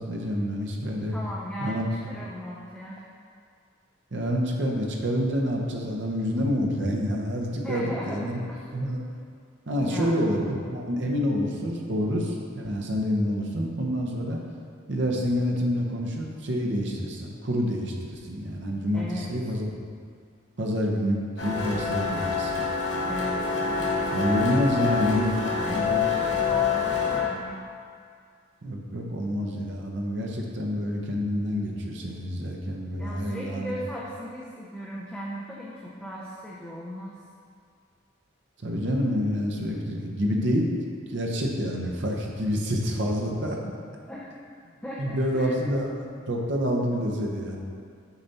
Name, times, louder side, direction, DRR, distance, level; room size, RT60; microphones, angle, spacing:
voice 1, 0.0-1.2 1.6-2.1 4.1-8.4 8.7-9.0 9.7-14.4 14.9-19.6 20.6-22.6 24.1-25.4 25.7-26.1 28.6-33.7 38.6-40.7 41.1-43.6 45.0-47.6, equal, 60° right, 0 dB, 0.8 m, -27 dB
voice 2, 1.1-3.0 7.6-8.7 9.8-10.4 18.9-19.3 23.1-24.3 25.6-27.6 33.0-37.2 43.6-43.7 44.1-44.4 44.8-45.6, equal, 5° left, -6 dB, 0.5 m, -37 dB
sound 1, 21.4-27.2, left 5 dB, 65° left, 1.1 m, -26 dB
6.9 x 4.2 x 4.1 m, 2.2 s
head